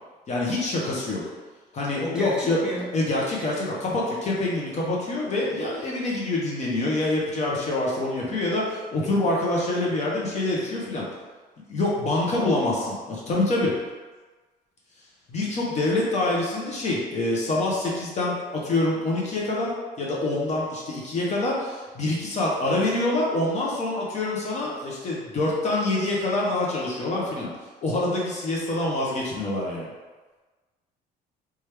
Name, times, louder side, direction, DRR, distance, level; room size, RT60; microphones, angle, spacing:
voice 1, 0.3-1.2 1.7-2.6 2.9-11.0 11.7-13.7 15.3-19.7 20.0-27.5 27.8-29.9, left 2 dB, 40° left, -4 dB, 0.7 m, -26 dB
voice 2, 2.0-2.9 12.3-12.9, equal, 5° right, -6 dB, 0.9 m, -33 dB
2.9 x 2.3 x 3.2 m, 1.3 s
cardioid pair, 110°, 17 cm